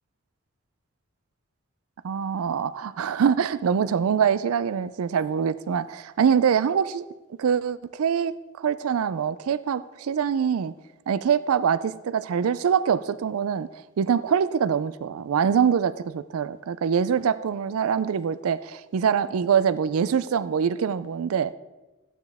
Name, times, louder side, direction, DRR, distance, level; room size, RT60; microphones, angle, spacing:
voice 1, 2.0-7.0 7.4-10.7 11.1-13.7 14.0-21.5, right 7 dB, 90° right, 16 dB, 0.4 m, -24 dB
14.5 x 9.2 x 3.5 m, 1.1 s
head